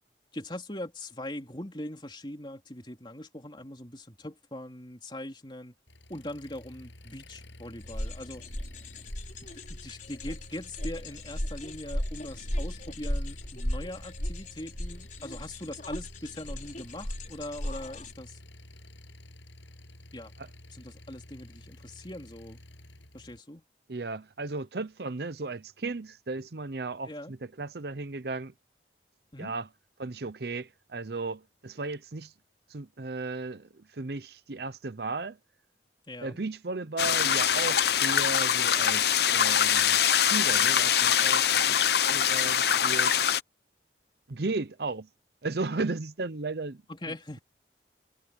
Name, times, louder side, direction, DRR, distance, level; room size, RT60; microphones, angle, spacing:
voice 1, 0.3-5.7 6.1-8.4 9.4-18.4 20.1-20.3 20.7-22.6 23.1-23.6 27.1-27.3 29.3-29.5 36.1-36.4 46.9-47.4, left 1 dB, 25° left, 3.7 m, -41 dB
Engine, 5.9-23.4, left 1 dB, 85° left, 8.0 m, -51 dB
sound 1, 7.8-18.1, left 1 dB, 45° left, 5.0 m, -36 dB
voice 2, 23.9-28.5 29.4-29.7 30.0-32.3 32.7-35.4 36.2-43.2 44.3-45.1 45.4-46.8, right 3 dB, 60° right, 0.7 m, -35 dB
sound 2, 37.0-43.4, left 9 dB, 60° left, 0.8 m, -23 dB
head